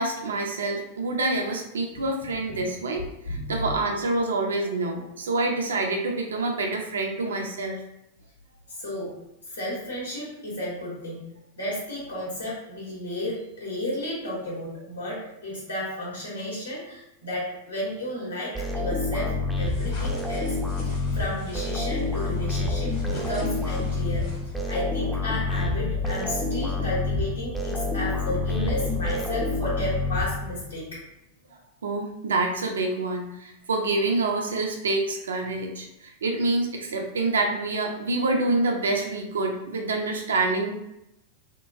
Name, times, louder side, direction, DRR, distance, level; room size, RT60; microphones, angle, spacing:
voice 1, 0.0-7.8 31.8-40.7, right 2 dB, 65° right, 2 dB, 0.5 m, -27 dB
voice 2, 3.3-3.7 8.8-9.1 9.5-11.2 11.6-24.3 24.7-31.0, left 1 dB, 70° left, -6 dB, 1.4 m, -33 dB
sound 1, 18.5-30.8, left 3 dB, ahead, 0.5 m, -28 dB
sound 2, 19.6-24.7, left 1 dB, 45° left, 1.2 m, -46 dB
3.6 x 2.2 x 2.6 m, 0.83 s
figure-of-eight pair, 90°, 0 cm